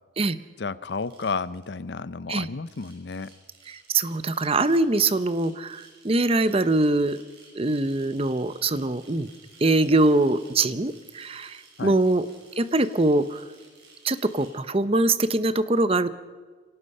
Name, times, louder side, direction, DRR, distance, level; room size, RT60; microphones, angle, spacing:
voice 1, 0.6-3.3 11.8-11.9, left 4 dB, 65° left, 17 dB, 0.6 m, -32 dB
sound 1, 0.9-1.7 2.5-14.5, right 3 dB, 60° right, 6.9 m, -54 dB
voice 2, 3.7-7.2 7.5-9.3 9.6-12.3 12.6-13.4 14.0-16.1, right 2 dB, 30° right, 13 dB, 0.7 m, -23 dB
26.5 x 18.0 x 5.5 m, 1.5 s
head